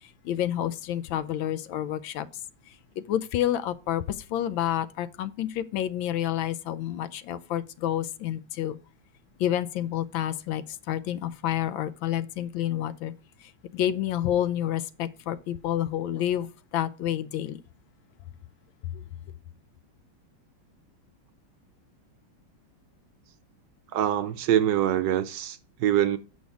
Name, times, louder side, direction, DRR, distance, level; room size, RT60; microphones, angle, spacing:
voice 1, 0.2-2.3 3.1-4.0 4.3-8.8 9.4-13.1 13.7-16.5 16.7-17.6, left 11 dB, 80° left, 1.3 m, -29 dB
voice 2, 23.9-26.2, right 11 dB, 75° right, 1.1 m, -24 dB
8.2 x 6.3 x 3.4 m
omnidirectional pair, 2.2 m